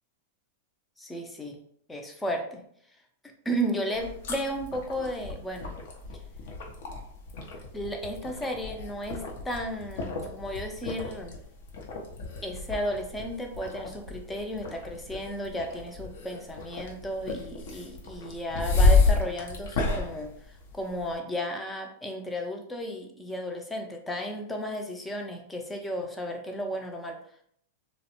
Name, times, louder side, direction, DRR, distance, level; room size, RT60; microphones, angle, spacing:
voice 1, 1.0-1.6 1.9-2.6 3.5-5.7 7.7-11.3 12.4-20.3 20.7-27.2, equal, 10° left, 3 dB, 0.4 m, -34 dB
sound 1, 3.9-21.1, left 3 dB, 70° left, 0.6 m, -31 dB
2.4 x 2.0 x 2.8 m, 0.65 s
hypercardioid pair, 125°, 0 cm